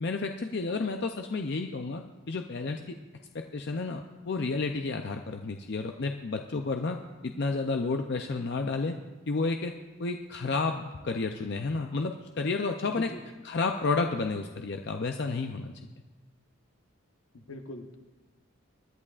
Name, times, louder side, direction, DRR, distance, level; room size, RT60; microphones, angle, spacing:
voice 1, 0.0-3.0 3.3-7.0 7.2-9.0 9.3-9.7 10.0-13.1 13.4-15.7, left 3 dB, 50° left, 5 dB, 0.5 m, -31 dB
voice 2, 12.8-13.2 17.3-18.0, left 2 dB, 75° left, 5 dB, 1.1 m, -41 dB
24.0 x 11.0 x 2.4 m, 1.2 s
head